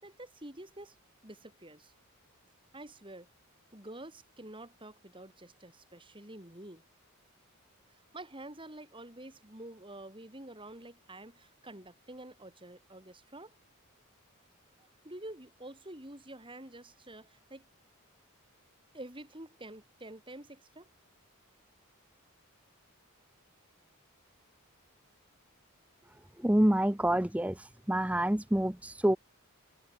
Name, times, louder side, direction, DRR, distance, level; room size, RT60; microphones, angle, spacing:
voice 1, 0.0-1.0 1.2-1.9 2.7-3.3 3.7-6.8 7.9-13.5 14.8-17.7 18.9-20.9, right 1 dB, 25° right, 5.8 m, -48 dB
voice 2, 26.4-29.2, right 1 dB, 5° right, 0.7 m, -27 dB
head